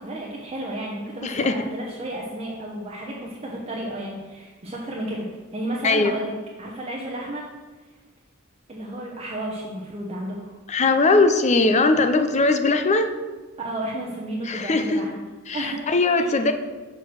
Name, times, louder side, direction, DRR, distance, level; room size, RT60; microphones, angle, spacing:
voice 1, 0.0-5.3 5.5-6.3 6.6-7.4 8.7-10.5 13.6-15.2 15.5-16.3, right 1 dB, 30° right, -3 dB, 0.8 m, -32 dB
voice 2, 1.2-1.6 5.8-6.1 10.7-13.1 14.5-15.0 15.5-16.5, left 3 dB, 35° left, 8 dB, 0.5 m, -20 dB
6.1 x 4.5 x 6.2 m, 1.3 s
head